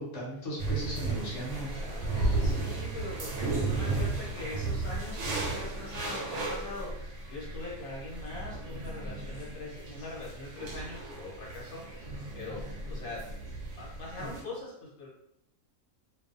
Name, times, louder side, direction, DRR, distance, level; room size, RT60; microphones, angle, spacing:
voice 1, 0.0-1.7 2.1-2.4, right 1 dB, 60° left, -5 dB, 1.1 m, -37 dB
sound 1, 0.6-14.4, right 3 dB, 65° right, 0.8 m, -34 dB
voice 2, 1.7-13.3 13.8-15.1, left 3 dB, 80° left, -5 dB, 1.2 m, -42 dB
2.6 x 2.3 x 2.4 m, 0.75 s
omnidirectional pair, 1.5 m